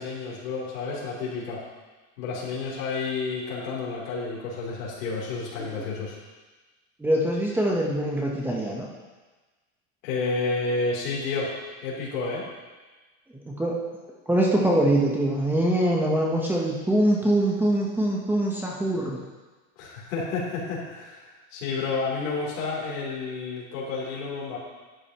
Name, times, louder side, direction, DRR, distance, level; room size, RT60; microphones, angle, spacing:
voice 1, 0.0-1.6 2.2-6.2 10.0-11.5 11.8-12.4 19.8-24.6, left 4 dB, 75° left, -4 dB, 3.3 m, -30 dB
voice 2, 7.0-8.9 13.5-13.8 14.3-19.2, right 1 dB, 5° right, -3 dB, 0.9 m, -23 dB
11.0 x 8.7 x 3.0 m, 1.3 s
supercardioid pair, 145°, 39 cm